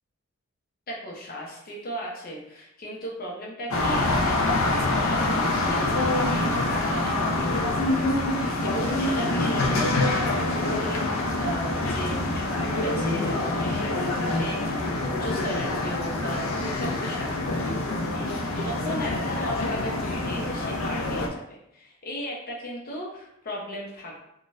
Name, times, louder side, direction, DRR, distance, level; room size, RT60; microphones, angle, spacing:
voice 1, 0.9-17.6 18.1-24.2, equal, 45° left, -2 dB, 0.8 m, -37 dB
sound 1, 3.7-21.3, left 2 dB, 85° left, 0.6 m, -26 dB
3.9 x 2.4 x 2.5 m, 0.80 s
head